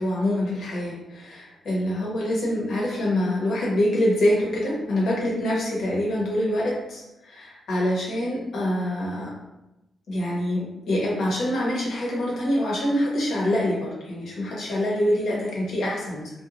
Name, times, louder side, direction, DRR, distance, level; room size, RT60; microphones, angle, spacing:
voice 1, 0.0-9.3 10.1-16.3, left 1 dB, 75° left, -4 dB, 0.9 m, -25 dB
2.9 x 2.3 x 2.5 m, 0.94 s
cardioid pair, 100°, 0 cm